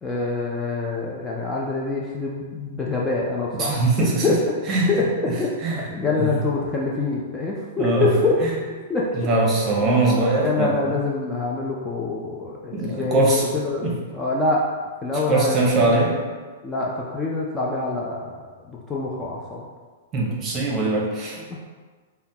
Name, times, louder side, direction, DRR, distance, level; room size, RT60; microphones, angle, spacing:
voice 1, 0.0-4.6 4.9-8.3 8.9-9.3 9.8-14.7 15.0-16.1 16.6-19.6 21.4-21.6, left 3 dB, 15° left, -4 dB, 0.4 m, -26 dB
voice 2, 3.6-4.4 4.7-5.3 5.6-6.3 7.8-8.1 8.4-8.5 9.1-10.8 12.7-13.4 13.8-13.9 15.3-16.2 20.1-21.4, right 2 dB, 25° right, -2 dB, 0.9 m, -22 dB
5.6 x 2.2 x 2.8 m, 1.5 s
hypercardioid pair, 140°, 0 cm